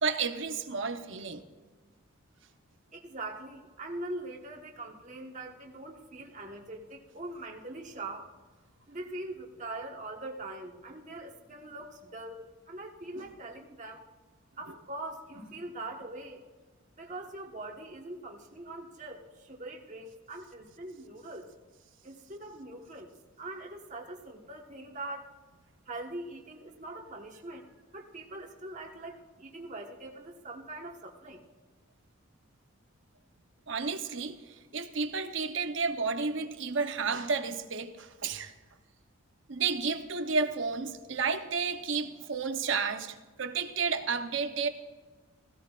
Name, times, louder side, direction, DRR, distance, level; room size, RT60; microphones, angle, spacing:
voice 1, 0.0-1.4 13.1-13.3 33.7-38.5 39.5-44.7, right 5 dB, 60° right, 0.9 m, -32 dB
voice 2, 2.9-8.3 8.9-14.0 14.6-16.4 17.0-21.5 22.0-23.1 23.4-25.3 25.8-31.4, right 2 dB, 35° right, 1.3 m, -42 dB
17.0 x 16.0 x 2.5 m
head